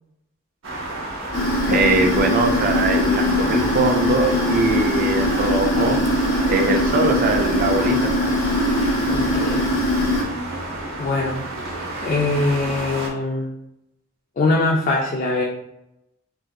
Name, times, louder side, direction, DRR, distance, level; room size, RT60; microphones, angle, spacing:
sound 1, 0.6-13.1, right 1 dB, 70° right, 0.7 m, -30 dB
sound 2, 1.3-10.2, left 1 dB, 90° left, 0.7 m, -21 dB
voice 1, 1.7-6.0 6.5-8.1, right 3 dB, 40° right, 4 dB, 0.3 m, -22 dB
voice 2, 9.1-9.6 11.0-11.4 12.0-13.5 14.4-15.4, left 2 dB, 40° left, -1 dB, 0.3 m, -22 dB
3.5 x 2.6 x 2.2 m, 0.86 s
head